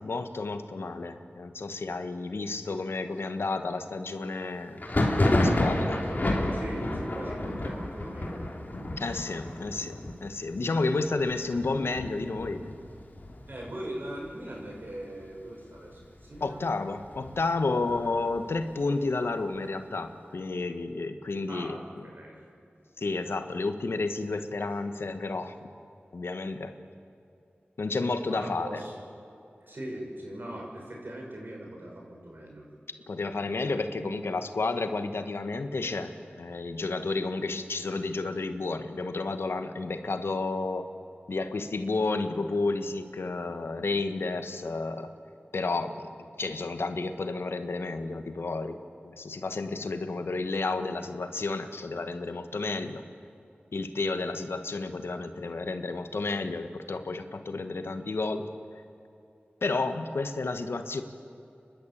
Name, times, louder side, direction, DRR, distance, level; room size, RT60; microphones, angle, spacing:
voice 1, 0.0-6.0 9.0-12.6 16.4-21.8 23.0-25.5 26.1-26.7 27.8-28.8 33.1-40.9 41.3-45.1 45.5-53.0 53.7-58.5 59.6-61.0, left 3 dB, 85° left, 9 dB, 1.3 m, -31 dB
Thunder, 4.8-14.3 14.6-15.2 15.5-16.5 16.9-18.6, left 1 dB, 45° left, 3.3 m, -30 dB
voice 2, 6.5-8.5 13.5-16.6 17.7-18.0 21.5-21.8 22.1-22.4 28.2-28.9 29.6-32.6 33.6-34.2, right 1 dB, 60° right, -1 dB, 6.3 m, -40 dB
30.0 x 12.0 x 8.7 m, 2.6 s
cardioid pair, 40°, 4 cm